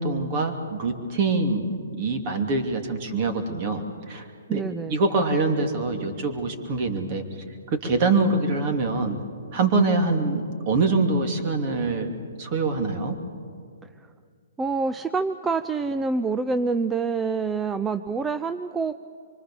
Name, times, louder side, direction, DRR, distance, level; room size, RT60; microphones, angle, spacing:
voice 1, 0.0-1.6 2.0-4.6 4.9-7.2 7.7-9.2 9.5-12.1 12.4-13.1, right 3 dB, 35° right, 5 dB, 2.9 m, -24 dB
voice 2, 4.5-5.0 13.8-14.1 14.6-18.9, right 4 dB, 10° right, 10 dB, 0.6 m, -26 dB
25.5 x 24.5 x 7.1 m, 2.2 s
hypercardioid pair, 130°, 0 cm